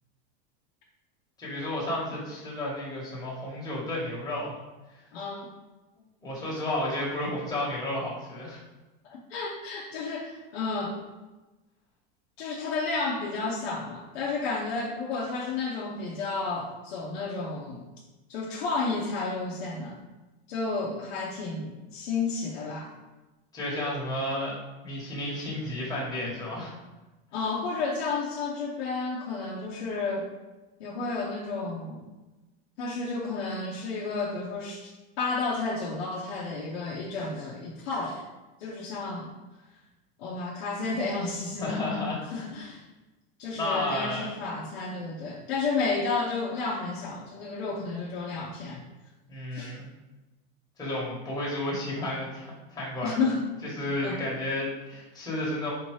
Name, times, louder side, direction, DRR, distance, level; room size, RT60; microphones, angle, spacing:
voice 1, 1.4-4.5 4.9-5.0 6.2-8.6 10.0-10.1 23.5-24.6 24.8-26.7 41.6-42.2 43.5-44.3 49.3-49.8 50.8-53.2 53.7-55.7, left 1 dB, 10° left, -6 dB, 1.3 m, -32 dB
voice 2, 5.1-5.5 9.0-11.0 12.4-17.8 18.3-20.0 20.5-22.9 27.3-30.3 30.8-32.0 32.8-38.2 38.6-39.3 40.2-41.8 42.3-42.8 43.4-48.8 49.5-49.7 53.0-53.4 54.0-54.2, left 3 dB, 75° left, -4 dB, 0.8 m, -31 dB
4.3 x 2.7 x 3.2 m, 1.1 s
supercardioid pair, 140°, 31 cm